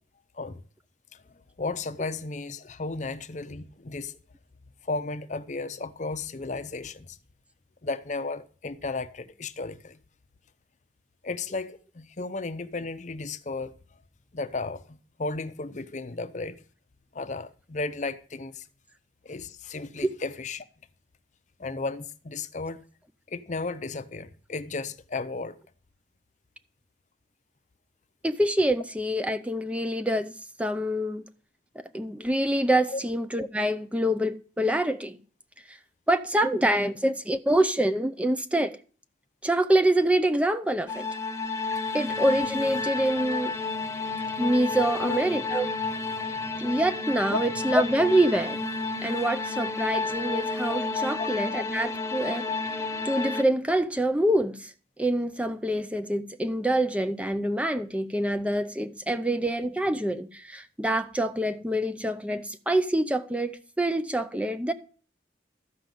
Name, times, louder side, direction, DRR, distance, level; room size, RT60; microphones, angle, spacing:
voice 1, 1.6-4.2 4.8-7.2 7.8-10.0 11.2-13.7 14.3-16.6 17.1-18.7 19.2-20.7 21.6-22.8 23.3-25.6 32.9-33.0 45.0-45.2 47.3-47.4 51.2-51.3, left 3 dB, 40° left, 0.6 m, -34 dB
voice 2, 28.2-30.3 30.6-31.2 31.9-35.2 35.7-35.8 36.1-38.7 39.4-41.1 41.9-43.5 44.4-45.7 46.6-48.6 49.0-52.5 53.0-54.7 55.0-64.7, right 1 dB, 5° right, 0.5 m, -26 dB
sound 1, 40.9-53.4, left 3 dB, 15° left, 0.9 m, -31 dB
13.5 x 5.3 x 7.6 m
head